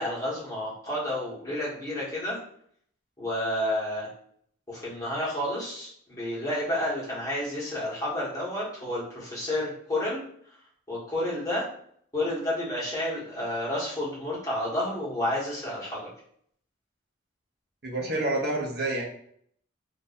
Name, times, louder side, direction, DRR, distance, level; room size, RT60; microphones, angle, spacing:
voice 1, 0.0-2.4 3.2-4.1 4.7-10.2 10.9-11.6 12.1-16.1, left 1 dB, 15° left, -8 dB, 1.4 m, -30 dB
voice 2, 17.8-19.0, right 2 dB, 55° right, -1 dB, 0.9 m, -28 dB
2.7 x 2.6 x 3.9 m, 0.65 s
head